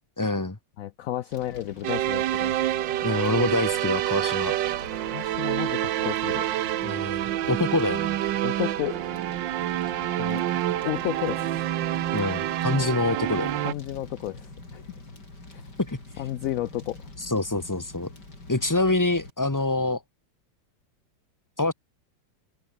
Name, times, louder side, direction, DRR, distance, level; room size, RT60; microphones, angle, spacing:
voice 1, 0.2-0.6 3.0-4.5 6.8-7.2 7.5-8.2 12.1-13.6 15.8-16.0 17.2-18.1 18.5-20.0 21.6-21.7, left 2 dB, 10° left, 1.1 m, -26 dB
voice 2, 0.8-2.6 4.9-6.5 8.4-9.0 10.2-10.4 10.8-11.6 13.6-14.8 15.5-15.7 16.2-17.1, left 13 dB, 80° left, 0.7 m, -32 dB
Fire, 1.3-19.3, left 2 dB, 65° left, 6.8 m, -45 dB
sound 1, 1.8-13.7, right 13 dB, 80° right, 1.4 m, -27 dB
open air
omnidirectional pair, 2.0 m